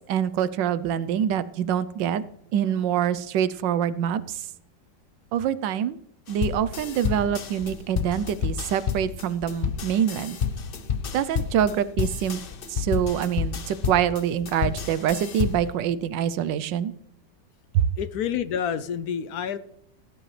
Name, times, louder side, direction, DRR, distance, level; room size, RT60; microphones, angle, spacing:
voice 1, 0.1-2.2 2.5-4.2 5.3-6.0 6.3-10.4 11.1-12.4 12.8-16.9, right 9 dB, 90° right, 16 dB, 1.4 m, -25 dB
sound 1, 6.3-15.8, left 7 dB, 50° left, 0.7 m, -30 dB
voice 2, 18.0-19.6, left 8 dB, 70° left, 14 dB, 1.0 m, -28 dB
18.0 x 10.0 x 3.3 m, 0.79 s
omnidirectional pair, 1.9 m